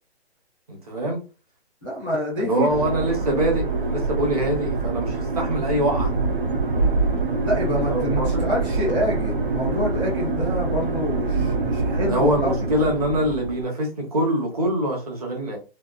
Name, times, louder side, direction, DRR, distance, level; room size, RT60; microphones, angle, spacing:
voice 1, 0.7-1.2 2.4-6.1 7.9-8.4 12.1-15.6, right 1 dB, 35° right, 0 dB, 1.1 m, -24 dB
voice 2, 1.8-2.7 7.4-12.5, left 1 dB, 5° right, -11 dB, 0.7 m, -27 dB
sound 1, 2.7-13.6, right 3 dB, 50° right, 0.8 m, -25 dB
3.4 x 2.4 x 2.4 m, 0.32 s
hypercardioid pair, 170°, 33 cm